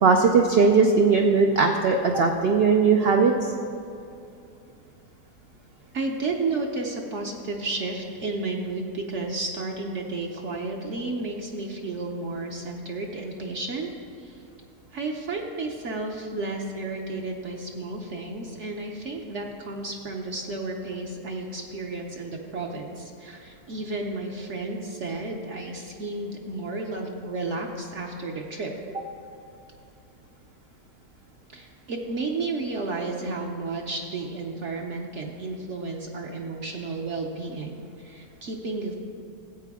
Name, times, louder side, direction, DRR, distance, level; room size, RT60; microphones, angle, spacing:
voice 1, 0.0-3.3, right 4 dB, 85° right, 3 dB, 0.5 m, -19 dB
voice 2, 5.9-13.9 14.2-14.4 14.9-28.7 31.5-38.9, right 3 dB, 55° right, 1 dB, 0.9 m, -32 dB
14.0 x 8.3 x 3.5 m, 2.7 s
omnidirectional pair, 1.7 m